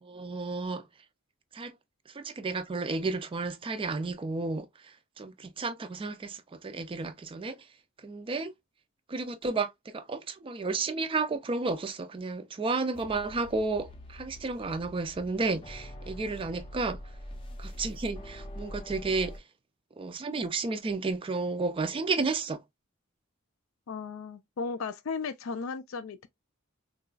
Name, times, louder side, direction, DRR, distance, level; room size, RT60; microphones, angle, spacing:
voice 1, 0.0-0.9 1.5-1.7 2.1-4.7 5.2-7.6 8.0-8.5 9.1-17.0 17.6-19.4 20.0-22.6, right 3 dB, 25° right, 0.3 m, -32 dB
sound 1, 12.9-19.4, equal, 25° left, 0.5 m, -44 dB
voice 2, 23.9-26.3, left 5 dB, 80° left, 0.4 m, -35 dB
3.8 x 2.4 x 2.3 m
head